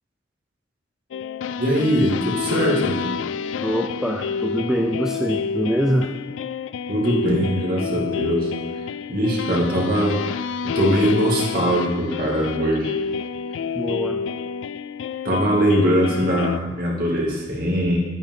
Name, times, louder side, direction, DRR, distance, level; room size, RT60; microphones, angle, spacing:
sound 1, 1.1-16.6, left 6 dB, 75° left, 0.3 m, -28 dB
voice 1, 1.6-3.0 6.9-8.5 9.1-12.9 15.2-18.0, equal, 50° right, -3 dB, 2.3 m, -21 dB
voice 2, 3.6-6.2 13.7-14.3, equal, 5° right, 3 dB, 0.4 m, -24 dB
9.8 x 8.6 x 3.7 m, 1.2 s
head